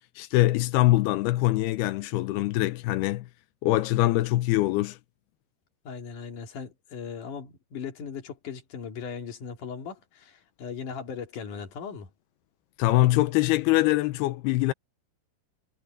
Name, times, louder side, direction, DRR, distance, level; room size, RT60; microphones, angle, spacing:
voice 1, 0.2-3.3 3.6-5.0 12.8-14.7, left 17 dB, 90° left, 2.7 m, -23 dB
voice 2, 5.9-12.1, left 6 dB, 55° left, 4.1 m, -38 dB
omnidirectional pair, 4.6 m